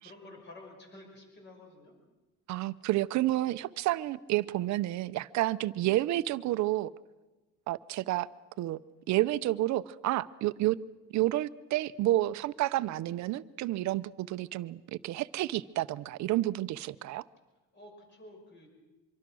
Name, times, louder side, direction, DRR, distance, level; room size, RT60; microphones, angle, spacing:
voice 1, 0.0-1.9 17.7-18.7, left 2 dB, 30° left, 3 dB, 6.0 m, -51 dB
voice 2, 2.5-6.9 7.7-8.3 8.6-8.8 9.1-10.8 11.1-17.2, right 16 dB, 50° right, 15 dB, 0.7 m, -30 dB
25.0 x 24.0 x 6.3 m, 1.2 s
cardioid pair, 155°, 36 cm